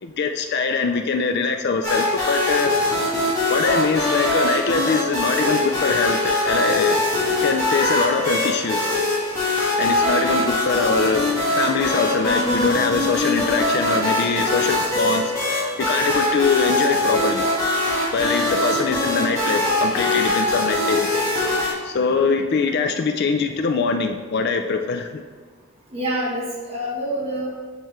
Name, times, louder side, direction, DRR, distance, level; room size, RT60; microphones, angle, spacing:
voice 1, 0.0-2.7 3.5-7.0 7.4-9.0 9.8-15.3 15.8-17.4 18.1-21.1 21.8-25.2, left 4 dB, 45° left, 6 dB, 0.4 m, -23 dB
sound 1, 1.8-21.7, left 1 dB, 15° left, 2.0 m, -22 dB
voice 2, 25.9-27.6, equal, 25° right, -5 dB, 1.7 m, -26 dB
8.0 x 4.4 x 3.7 m, 1.5 s
head